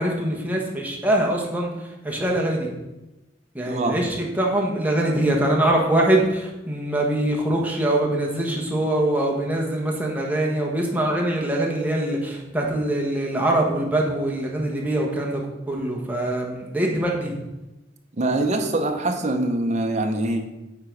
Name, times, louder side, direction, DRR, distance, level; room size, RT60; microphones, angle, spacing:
voice 1, 0.0-2.7 3.5-15.4 15.7-17.4, right 1 dB, 10° right, -2 dB, 1.3 m, -23 dB
voice 2, 3.7-4.0 18.2-20.5, right 2 dB, 40° right, 4 dB, 0.8 m, -24 dB
8.7 x 3.9 x 4.6 m, 0.98 s
head